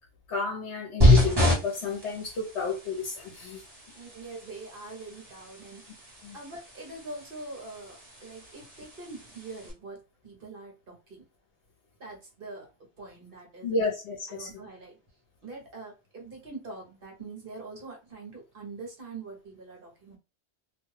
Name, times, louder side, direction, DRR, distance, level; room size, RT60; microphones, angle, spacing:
voice 1, 0.3-3.6 6.2-6.4 13.6-14.5, left 4 dB, 70° left, 1.0 m, -31 dB
sound 1, 1.0-9.7, left 1 dB, 20° right, 1.0 m, -28 dB
voice 2, 3.9-5.8 6.3-11.2 12.0-12.7 13.0-13.9 14.3-15.0 15.4-20.2, right 3 dB, 55° right, 1.1 m, -44 dB
2.6 x 2.3 x 3.1 m
omnidirectional pair, 1.2 m